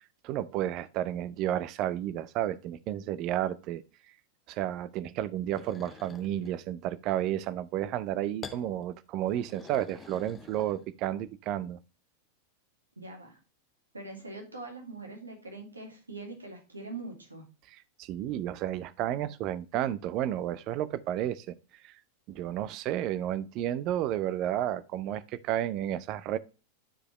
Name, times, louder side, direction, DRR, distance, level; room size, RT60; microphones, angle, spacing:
voice 1, 0.2-3.8 4.5-11.8 17.7-21.5 21.8-21.9 22.3-26.4, right 12 dB, 40° right, 0.6 m, -32 dB
sound 1, 5.5-6.6 8.4-8.7 9.2-11.1, left 5 dB, 20° left, 0.8 m, -47 dB
voice 2, 13.0-13.4 13.9-17.4, right 3 dB, 80° right, 2.2 m, -43 dB
10.0 x 4.8 x 3.0 m
figure-of-eight pair, 90°, 0 cm